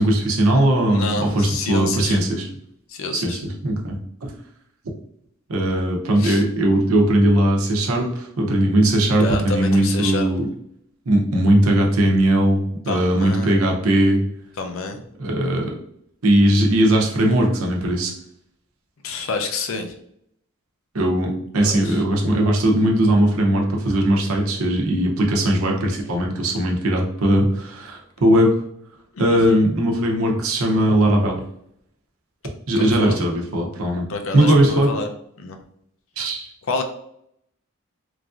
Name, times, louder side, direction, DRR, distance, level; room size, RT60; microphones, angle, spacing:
voice 1, 0.0-2.5 3.1-3.9 4.2-4.3 5.5-10.5 11.1-14.2 15.2-15.8 16.2-18.1 20.9-28.5 29.2-31.4 32.7-34.1 34.3-34.9 36.2-36.5, right 1 dB, 85° right, 0 dB, 0.7 m, -19 dB
voice 2, 0.9-2.2 2.9-3.4 6.2-6.4 9.2-10.3 12.9-13.6 14.6-15.0 19.0-19.9 21.8-22.0 29.1-29.6 32.7-33.1 34.1-35.1 35.4-35.6 36.7-36.8, left 3 dB, 70° left, 5 dB, 0.5 m, -28 dB
3.1 x 2.5 x 2.4 m, 0.71 s
head